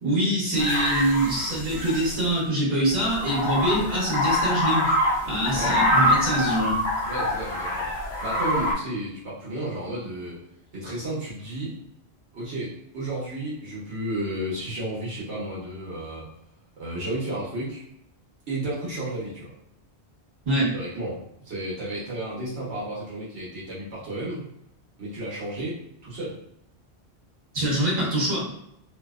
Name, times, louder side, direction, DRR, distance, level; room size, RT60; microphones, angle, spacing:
voice 1, 0.0-5.0 5.3-6.8 20.4-20.7 27.5-28.5, right 1 dB, 50° right, -7 dB, 1.3 m, -24 dB
sound 1, 0.6-2.2 2.9-8.7, left 1 dB, 70° left, 1.0 m, -25 dB
voice 2, 7.1-10.4 10.7-11.8 12.3-16.3 16.8-17.8 18.5-19.5 20.7-24.5 25.0-26.4, right 1 dB, 80° right, -8 dB, 1.2 m, -32 dB
2.7 x 2.0 x 2.2 m, 0.77 s
omnidirectional pair, 1.1 m